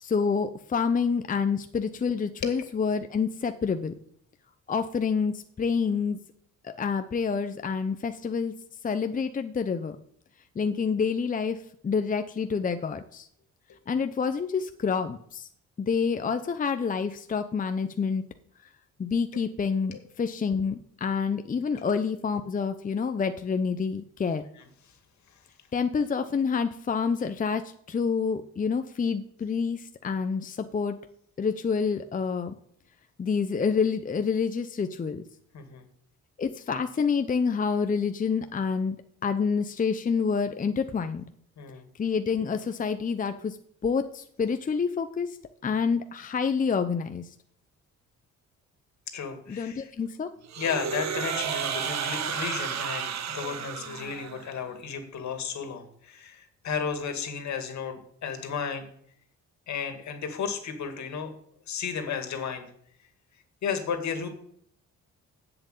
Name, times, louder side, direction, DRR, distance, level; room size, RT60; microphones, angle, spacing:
voice 1, 0.0-3.9 4.7-6.2 6.6-8.5 8.8-10.0 10.6-13.3 13.9-15.5 15.8-18.2 19.0-24.4 25.7-31.0 31.4-32.5 33.2-35.2 36.4-39.0 39.2-41.2 42.0-43.6 43.8-45.4 45.6-47.3 49.5-50.3, left 5 dB, 25° left, 8 dB, 0.7 m, -28 dB
voice 2, 24.6-25.0 25.3-25.4 35.5-35.9 41.6-41.9 49.1-49.9 50.6-58.8 59.7-61.3 61.7-62.7 63.6-64.3, left 6 dB, 65° left, 6 dB, 2.2 m, -33 dB
sound 1, 50.5-54.6, right 8 dB, 65° right, 1.2 m, -32 dB
7.9 x 7.5 x 8.3 m, 0.66 s
cardioid pair, 90°, 30 cm